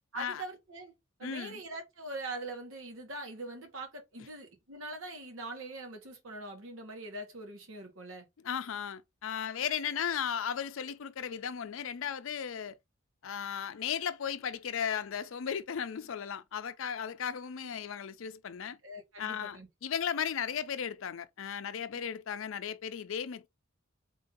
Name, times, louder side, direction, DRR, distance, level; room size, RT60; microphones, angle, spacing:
voice 1, 0.1-0.9 1.2-8.3 17.6-17.7 18.8-19.7 21.9-22.1, right 2 dB, 80° right, 1.4 m, -43 dB
voice 2, 1.2-1.6 8.4-12.8 13.2-18.8 19.2-23.5, left 8 dB, 70° left, 0.5 m, -36 dB
3.7 x 2.6 x 3.7 m
head